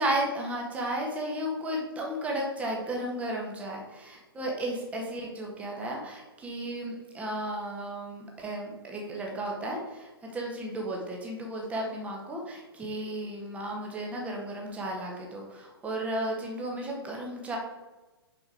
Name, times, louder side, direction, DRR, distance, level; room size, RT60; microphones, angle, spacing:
voice 1, 0.0-17.6, right 1 dB, 10° right, -1 dB, 1.6 m, -34 dB
6.5 x 5.4 x 4.9 m, 1.2 s
figure-of-eight pair, 125°, 14 cm